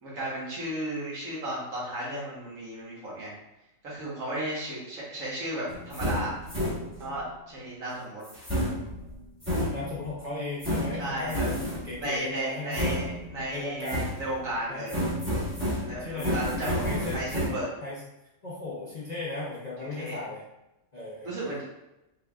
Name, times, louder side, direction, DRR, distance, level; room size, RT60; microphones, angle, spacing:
voice 1, 0.0-3.4 3.8-6.4 7.0-8.2 11.0-11.5 12.0-15.1 15.8-17.7 19.8-20.2 21.2-21.6, right 1 dB, 80° right, -6 dB, 1.7 m, -34 dB
sound 1, 5.7-7.2 8.2-10.2 10.6-12.0 12.7-13.5 13.8-14.5 14.9-17.5, equal, 10° right, 1.0 m, -31 dB
voice 2, 9.7-12.8 13.5-14.1 14.7-14.9 16.0-17.4 17.8-18.0 18.4-20.4 20.9-21.6, left 2 dB, 45° left, -6 dB, 0.6 m, -36 dB
3.9 x 3.4 x 2.3 m, 0.93 s
omnidirectional pair, 1.4 m